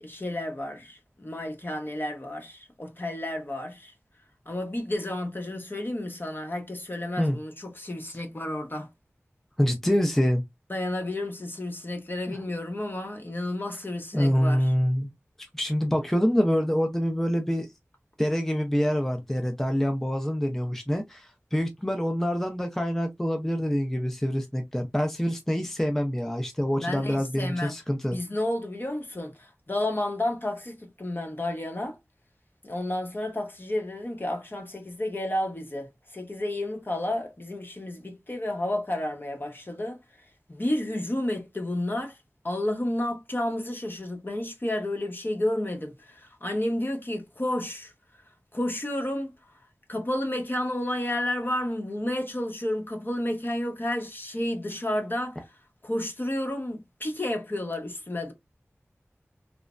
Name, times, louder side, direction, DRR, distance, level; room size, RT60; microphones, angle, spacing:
voice 1, 0.0-3.9 4.5-8.9 10.7-14.7 26.8-27.7 28.1-32.0 32.6-40.0 40.5-42.2 42.4-47.9 48.5-49.3 49.9-55.4 55.8-58.3, left 1 dB, 40° left, 0.9 m, -31 dB
voice 2, 9.6-10.4 12.3-12.4 14.1-15.1 15.5-17.7 18.2-28.2, equal, 5° left, 0.5 m, -26 dB
3.2 x 2.0 x 2.4 m
wide cardioid pair, 50°, 5 cm